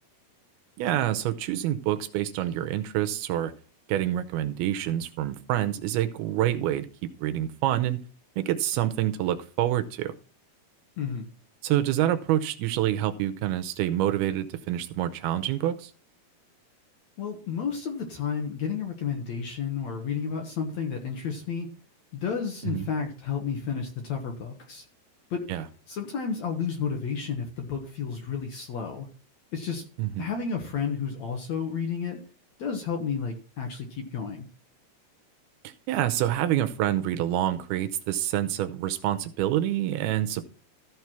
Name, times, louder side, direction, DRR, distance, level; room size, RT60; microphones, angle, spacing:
voice 1, 0.8-3.5 3.9-6.9 7.2-8.0 8.4-10.1 11.6-15.9 22.6-22.9 25.5-25.7 30.0-30.3 35.6-40.4, right 12 dB, 80° right, 10 dB, 2.5 m, -27 dB
voice 2, 11.0-11.3 17.2-21.7 22.1-24.8 25.3-25.4 25.9-29.1 29.5-29.8 30.2-32.2 32.6-34.5, left 6 dB, 60° left, 3 dB, 2.0 m, -31 dB
14.0 x 4.7 x 5.9 m, 0.39 s
omnidirectional pair, 4.6 m